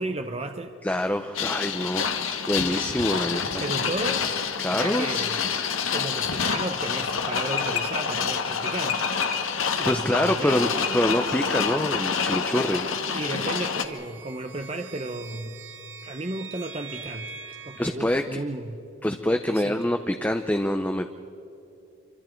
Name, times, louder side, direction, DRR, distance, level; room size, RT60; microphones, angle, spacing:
voice 1, 0.0-0.7 3.6-4.3 4.7-5.4 5.9-9.0 9.8-10.8 13.1-15.6 16.1-17.4 17.7-18.8 19.3-19.8, right 2 dB, 30° right, 6 dB, 0.8 m, -33 dB
voice 2, 0.8-3.6 4.6-5.2 9.6-12.9 17.8-18.4 19.0-21.1, left 1 dB, 10° left, 6 dB, 0.6 m, -26 dB
sound 1, 1.3-13.8, left 6 dB, 85° left, 1.6 m, -27 dB
sound 2, 11.2-17.9, right 5 dB, 70° right, 1.7 m, -44 dB
27.5 x 25.0 x 4.5 m, 2.9 s
head